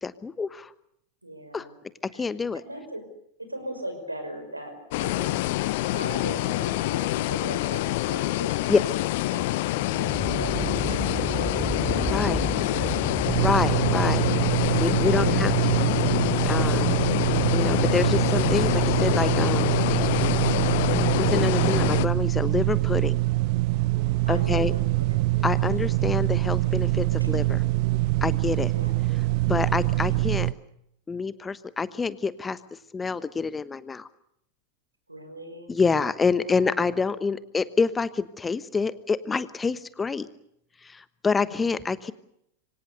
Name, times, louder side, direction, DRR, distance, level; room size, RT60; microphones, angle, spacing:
voice 1, 0.0-0.7 1.5-1.7 2.1-2.6 8.7-8.8 12.1-12.4 13.4-14.2 14.8-15.9 16.5-17.0 17.5-20.2 21.2-23.2 24.3-24.7 25.4-27.4 28.2-28.7 29.5-30.5 31.1-32.6 32.9-34.1 35.7-40.3 40.8-42.1, left 4 dB, 15° left, 15 dB, 1.1 m, -27 dB
voice 2, 1.2-1.8 2.1-2.3 2.6-3.0 3.4-5.4 5.9-9.0 9.3-12.4 12.8-12.9 13.2-13.9 15.0-15.5 15.9-16.0 17.0-17.5 24.3-25.3 27.2-27.6 28.7-28.9 29.9-30.4 35.1-35.7 36.4-36.9 41.4-41.7, right 1 dB, 85° right, 8 dB, 5.7 m, -40 dB
sound 1, 4.9-22.0, left 17 dB, 50° left, 1.0 m, -26 dB
sound 2, 9.7-14.9, right 4 dB, 20° right, 7.0 m, -33 dB
sound 3, 13.2-30.5, right 20 dB, 45° right, 0.9 m, -24 dB
27.0 x 24.5 x 6.7 m, 0.76 s
figure-of-eight pair, 90°, 0 cm